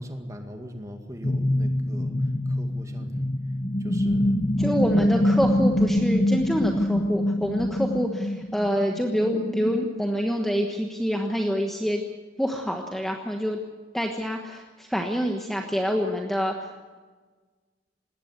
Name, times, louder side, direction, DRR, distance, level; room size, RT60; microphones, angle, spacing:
voice 1, 0.0-3.2 3.8-4.8, equal, 15° right, 5 dB, 2.1 m, -41 dB
sound 1, 1.2-9.9, left 1 dB, 25° left, 0.8 m, -25 dB
voice 2, 4.6-12.0 12.4-13.6 13.9-16.7, equal, ahead, 2 dB, 1.3 m, -26 dB
20.0 x 17.0 x 8.2 m, 1.4 s
head